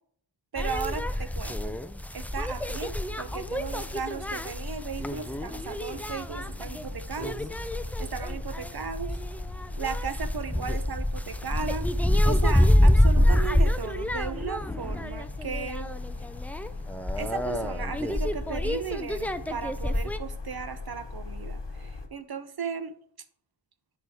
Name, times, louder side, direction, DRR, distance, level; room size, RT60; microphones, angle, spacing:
voice 1, 0.5-1.8 2.1-7.4 8.0-9.2 9.8-11.9 12.2-15.9 17.2-23.0, right 6 dB, 55° right, 10 dB, 0.7 m, -36 dB
sound 1, 0.6-20.2, left 1 dB, 5° left, 0.3 m, -27 dB
sound 2, 2.3-22.1, left 3 dB, 65° left, 1.1 m, -41 dB
10.0 x 4.8 x 3.5 m, 0.65 s
wide cardioid pair, 45°, 47 cm